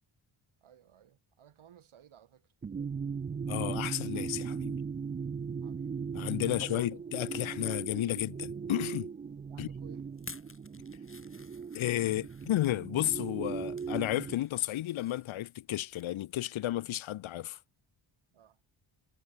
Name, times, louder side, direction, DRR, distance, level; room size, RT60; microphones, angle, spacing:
voice 1, 0.6-2.5 5.6-6.0 6.5-6.9 9.5-10.1 18.3-18.6, right 9 dB, 80° right, 6.4 m, -58 dB
sound 1, 2.6-14.3, right 6 dB, 20° right, 0.3 m, -38 dB
voice 2, 3.5-4.8 6.1-9.1 9.6-9.7 11.7-17.6, left 14 dB, 75° left, 0.8 m, -32 dB
sound 2, 10.1-12.8 13.4-13.9 14.3-16.0 16.3-16.5 16.9-17.0, left 4 dB, 25° left, 3.6 m, -52 dB
cardioid pair, 100°, 48 cm